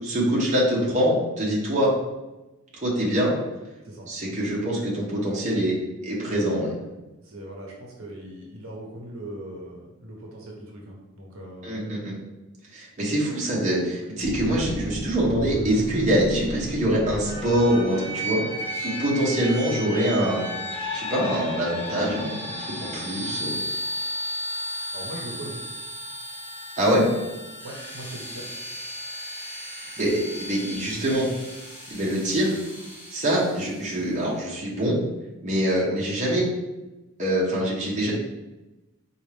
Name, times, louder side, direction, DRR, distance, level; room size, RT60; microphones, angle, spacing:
voice 1, 0.0-1.9 2.8-3.3 4.1-5.7 6.0-6.7 11.6-12.1 12.7-18.4 18.8-20.4 20.9-23.6 26.8-27.0 30.0-31.3 31.9-32.5 33.1-34.9 35.4-36.4 37.2-38.1, right 1 dB, 35° right, -5 dB, 0.8 m, -24 dB
voice 2, 7.2-11.7 24.9-25.6 27.6-28.5 35.8-36.1, right 1 dB, 75° right, -1 dB, 0.8 m, -39 dB
sound 1, 14.2-18.5, equal, 60° left, 0.8 m, -33 dB
sound 2, 17.2-34.0, equal, 25° left, 1.3 m, -34 dB
4.2 x 2.4 x 3.3 m, 1.1 s
head